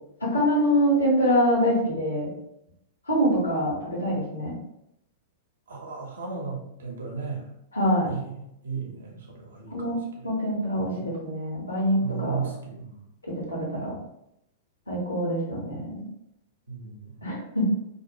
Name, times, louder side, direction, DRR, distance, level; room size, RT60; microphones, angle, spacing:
voice 1, 0.2-2.3 3.1-4.5 7.7-8.1 9.7-12.4 13.5-13.9 14.9-16.0 17.2-17.7, equal, 85° left, -3 dB, 1.0 m, -25 dB
voice 2, 5.7-7.5 8.1-10.3 10.7-11.1 12.0-13.1 16.7-17.3, right 5 dB, 70° right, 0 dB, 0.7 m, -36 dB
2.4 x 2.2 x 2.8 m, 0.79 s
figure-of-eight pair, 100°, 0 cm